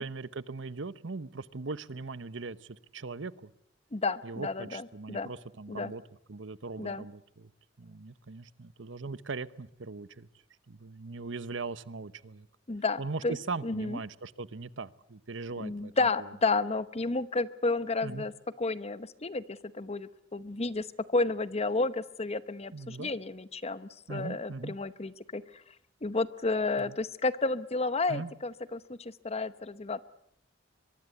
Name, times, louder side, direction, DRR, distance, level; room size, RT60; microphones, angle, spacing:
voice 1, 0.0-3.5 4.2-6.0 6.3-7.5 7.8-10.3 10.7-12.5 13.0-15.9 16.2-16.3 18.0-18.3 22.7-23.1 24.1-24.7 26.8-27.0 28.1-28.3, right 3 dB, 75° right, 16 dB, 0.9 m, -40 dB
voice 2, 3.9-5.3 5.7-5.9 6.8-7.1 12.7-13.4 13.6-14.0 15.6-18.3 18.6-25.6 26.0-30.0, left 3 dB, 35° left, 15 dB, 0.9 m, -31 dB
23.5 x 23.0 x 8.2 m, 0.74 s
head